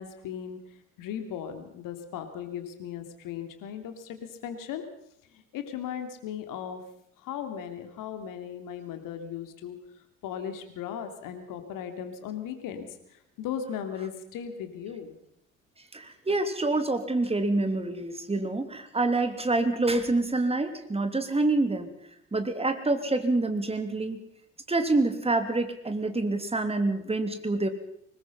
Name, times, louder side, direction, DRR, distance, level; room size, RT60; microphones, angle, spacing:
voice 1, 0.0-4.8 5.3-6.8 7.2-15.2, left 8 dB, 55° left, 7 dB, 3.0 m, -37 dB
voice 2, 15.9-21.9 22.3-24.2 24.7-27.7, right 2 dB, 15° right, 8 dB, 3.1 m, -27 dB
24.5 x 21.0 x 5.7 m, 0.75 s
figure-of-eight pair, 60°, 39 cm